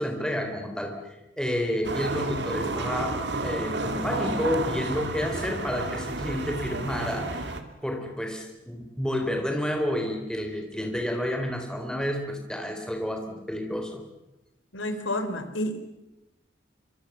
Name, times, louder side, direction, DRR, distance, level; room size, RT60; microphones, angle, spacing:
voice 1, 0.0-7.5 7.8-14.0, equal, 5° left, 4 dB, 3.9 m, -30 dB
sound 1, 1.8-7.6, right 2 dB, 60° right, 2.3 m, -31 dB
voice 2, 14.7-15.8, left 1 dB, 80° left, 9 dB, 3.7 m, -30 dB
25.5 x 25.0 x 7.3 m, 0.93 s
head